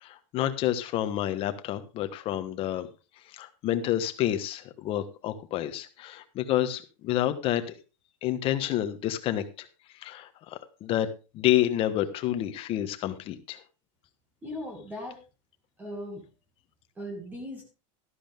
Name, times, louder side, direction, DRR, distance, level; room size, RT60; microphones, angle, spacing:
voice 1, 0.0-2.9 3.2-7.6 8.2-9.7 9.9-11.1 11.3-13.6, left 12 dB, 35° left, 10 dB, 1.3 m, -29 dB
voice 2, 14.4-15.2 15.8-16.2 17.0-17.6, left 1 dB, 10° right, 2 dB, 2.4 m, -38 dB
13.0 x 11.5 x 3.6 m, 0.31 s
supercardioid pair, 165°, 17 cm